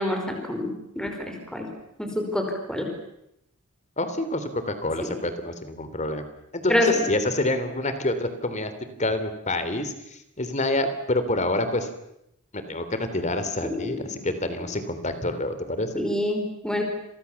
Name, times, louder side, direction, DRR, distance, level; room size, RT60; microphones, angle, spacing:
voice 1, 0.0-1.7 2.0-2.1 2.3-2.4 2.7-2.9 5.0-5.2 6.7-6.9 13.7-13.9 16.0-16.8, left 1 dB, 5° left, 3 dB, 5.2 m, -27 dB
voice 2, 4.0-6.3 6.5-11.9 12.5-16.0, left 2 dB, 35° left, 10 dB, 3.4 m, -27 dB
30.0 x 24.5 x 7.2 m, 0.80 s
head